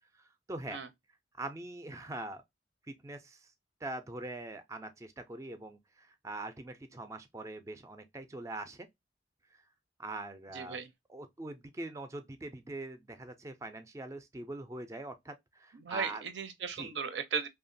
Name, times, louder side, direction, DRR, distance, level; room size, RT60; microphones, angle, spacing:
voice 1, 0.5-0.8 1.4-2.4 2.9-3.4 3.8-8.9 10.0-10.8 11.1-16.2 16.8-16.9, right 2 dB, 15° right, 0.3 m, -42 dB
voice 2, 10.5-10.9 15.7-17.5, right 6 dB, 80° right, 0.5 m, -36 dB
2.8 x 2.3 x 2.5 m
head